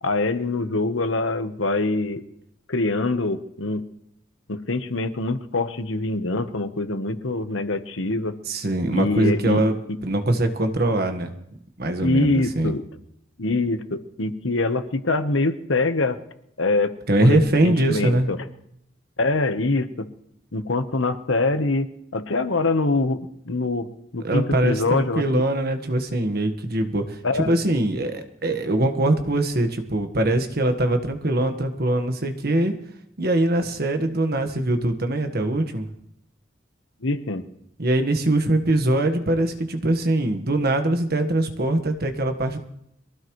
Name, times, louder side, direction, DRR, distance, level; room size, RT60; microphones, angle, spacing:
voice 1, 0.0-2.2 2.7-3.8 4.5-8.3 8.9-9.6 9.9-10.0 12.0-12.8 13.4-16.2 16.6-16.9 17.2-18.4 19.2-20.1 20.5-21.9 22.1-23.9 24.1-25.4 27.2-27.5 37.0-37.4, left 2 dB, 85° left, 9 dB, 1.2 m, -24 dB
voice 2, 8.5-11.3 11.8-12.7 17.1-18.3 24.2-32.7 33.2-35.9 37.8-42.6, right 1 dB, 50° right, 7 dB, 1.5 m, -22 dB
22.5 x 16.0 x 3.2 m, 0.76 s
head